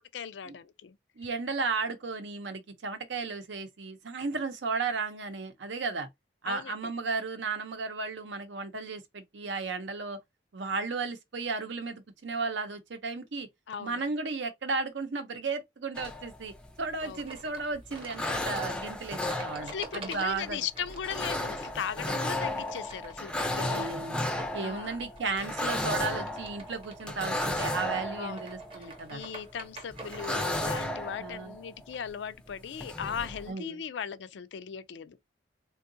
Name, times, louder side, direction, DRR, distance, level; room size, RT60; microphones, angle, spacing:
voice 1, 0.1-1.0 6.5-6.9 13.7-14.0 17.0-17.2 19.6-23.9 24.6-25.0 28.2-28.4 28.8-35.2, left 7 dB, 70° left, 0.4 m, -38 dB
voice 2, 1.2-6.1 6.4-10.2 10.5-13.5 13.8-20.7 23.6-24.2 24.5-29.2 31.2-31.6 33.5-33.8, right 4 dB, 70° right, 0.7 m, -34 dB
sound 1, 15.9-17.4 17.7-29.5 29.9-32.1 32.5-32.6 32.7-33.5, left 1 dB, 5° left, 0.4 m, -34 dB
sound 2, 17.0-30.6, right 2 dB, 30° right, 0.8 m, -48 dB
3.6 x 2.3 x 2.6 m
head